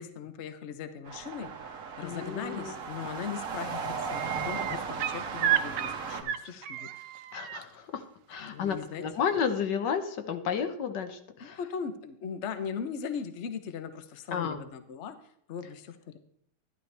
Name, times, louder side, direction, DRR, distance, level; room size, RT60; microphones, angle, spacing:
voice 1, 0.0-6.9 8.4-9.0 11.4-15.2 15.5-16.2, left 7 dB, 50° left, 10 dB, 1.0 m, -39 dB
sound 1, 1.1-6.2, right 5 dB, 50° right, 1.5 m, -36 dB
voice 2, 2.0-2.7 4.7-4.8 6.4-6.5 7.3-11.6 14.3-14.6, left 7 dB, 80° left, 8 dB, 1.7 m, -32 dB
sound 2, 2.9-3.3 3.6-7.6 9.3-9.4, right 11 dB, 75° right, 1.3 m, -32 dB
12.0 x 12.0 x 3.4 m, 0.70 s
omnidirectional pair, 1.9 m